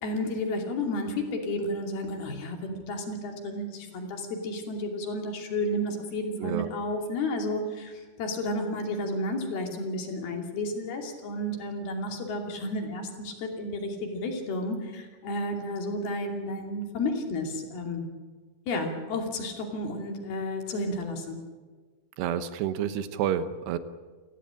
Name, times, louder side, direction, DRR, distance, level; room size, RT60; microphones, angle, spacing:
voice 1, 0.0-18.1 18.7-21.4, left 1 dB, 70° left, 3 dB, 4.5 m, -32 dB
voice 2, 22.2-23.8, right 9 dB, 85° right, 12 dB, 3.2 m, -29 dB
29.0 x 15.0 x 8.9 m, 1.5 s
omnidirectional pair, 4.7 m